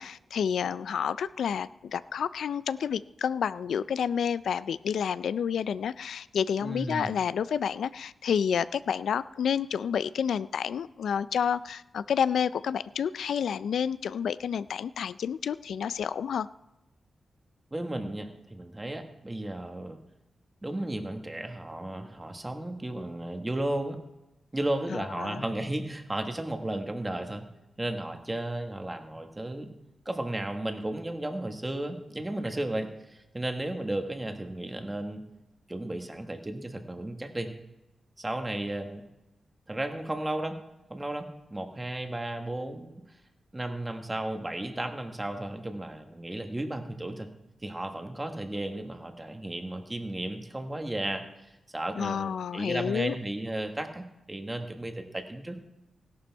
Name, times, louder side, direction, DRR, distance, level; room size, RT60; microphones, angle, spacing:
voice 1, 0.0-16.5 24.9-25.4 52.0-53.2, left 7 dB, 85° left, 16 dB, 0.3 m, -29 dB
voice 2, 6.6-7.1 17.7-20.0 20.6-24.0 24.5-27.4 27.8-29.7 30.0-35.2 35.7-37.5 38.2-39.0 39.7-40.6 40.9-43.0 43.5-47.3 47.6-51.2 51.7-55.6, right 1 dB, 15° right, 6 dB, 1.2 m, -34 dB
17.0 x 11.5 x 4.5 m, 0.95 s
wide cardioid pair, 175°, 0 cm